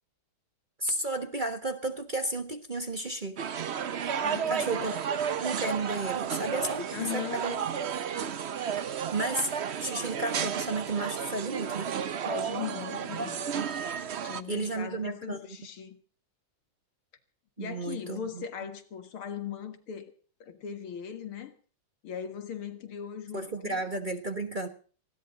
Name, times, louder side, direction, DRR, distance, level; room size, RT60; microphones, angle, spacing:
voice 1, 0.8-3.4 4.5-5.0 5.4-7.6 8.1-8.2 9.1-9.5 9.8-11.9 13.2-13.9 14.5-15.6 17.6-18.4 23.3-24.7, right 2 dB, 25° right, 1.3 m, -33 dB
sound 1, 3.4-14.4, right 8 dB, 85° right, 0.5 m, -32 dB
voice 2, 4.2-4.9 6.9-7.6 12.2-13.5 14.2-16.0 17.6-20.1 20.4-21.6 22.0-23.9, left 8 dB, 85° left, 2.6 m, -39 dB
20.0 x 15.5 x 4.0 m
omnidirectional pair, 2.3 m